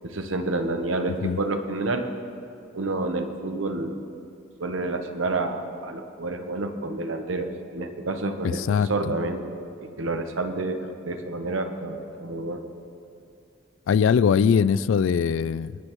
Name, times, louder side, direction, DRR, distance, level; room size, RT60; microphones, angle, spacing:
voice 1, 0.0-2.1 2.7-4.0 4.6-9.4 9.8-12.6, right 2 dB, 85° right, 6 dB, 1.0 m, -29 dB
voice 2, 8.4-8.9 13.9-15.8, left 7 dB, 75° left, 17 dB, 0.3 m, -21 dB
25.0 x 9.8 x 3.1 m, 2.6 s
head